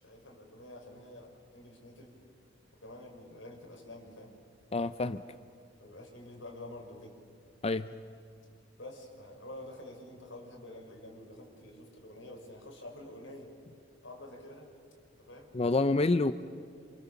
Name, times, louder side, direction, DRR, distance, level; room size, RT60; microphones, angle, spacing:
voice 1, 0.0-2.2 2.8-4.3 5.8-7.2 8.8-13.5 14.0-14.8 15.1-15.5, left 1 dB, 80° left, 1 dB, 5.9 m, -48 dB
voice 2, 4.7-5.2 7.6-7.9 15.5-16.3, left 3 dB, 30° left, 11 dB, 0.6 m, -27 dB
27.5 x 27.5 x 7.2 m, 2.3 s
head